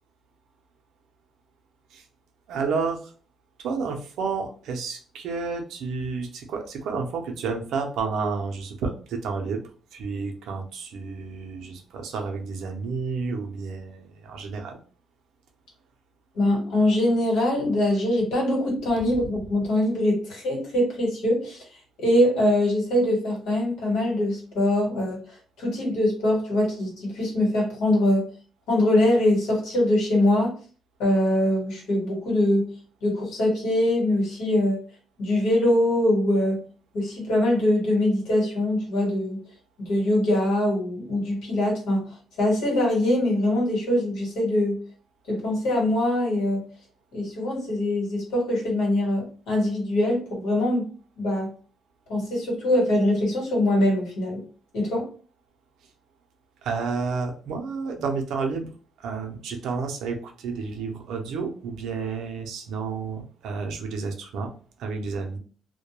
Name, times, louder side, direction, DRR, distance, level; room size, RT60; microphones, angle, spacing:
voice 1, 2.5-3.1 3.6-9.6 9.9-14.8 56.6-58.7 59.0-64.5 64.8-65.4, right 4 dB, 80° right, 3 dB, 0.5 m, -30 dB
voice 2, 16.3-21.6 22.0-25.2 25.6-28.3 28.7-30.5 31.0-32.6 33.0-34.8 35.2-36.6 36.9-39.4 39.8-44.8 45.3-46.6 47.1-50.9 51.2-51.5 52.1-54.4 54.7-55.1, left 1 dB, 90° left, -2 dB, 1.3 m, -23 dB
2.2 x 2.1 x 2.9 m, 0.40 s
cardioid pair, 90°, 0 cm